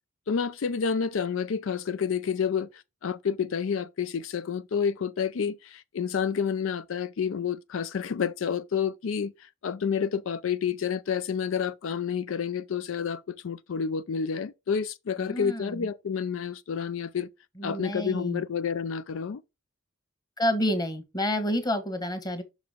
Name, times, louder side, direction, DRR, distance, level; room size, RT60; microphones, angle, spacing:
voice 1, 0.3-17.3 17.6-19.4, left 6 dB, 80° left, 0.4 m, -29 dB
voice 2, 15.2-15.7 17.6-18.4 20.4-22.4, equal, 20° left, 1.2 m, -29 dB
6.1 x 4.8 x 5.0 m
head